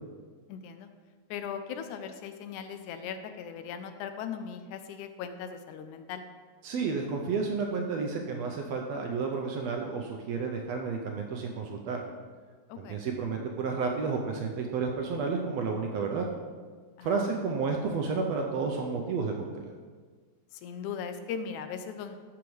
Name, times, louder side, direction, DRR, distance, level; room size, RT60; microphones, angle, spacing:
voice 1, 0.5-0.9 1.3-6.2 12.7-13.0 17.0-17.3 20.5-22.2, left 7 dB, 80° left, 8 dB, 2.0 m, -39 dB
voice 2, 6.6-12.0 12.8-16.2 17.0-19.7, right 4 dB, 75° right, 2 dB, 1.6 m, -31 dB
13.0 x 6.0 x 3.2 m, 1.6 s
omnidirectional pair, 3.5 m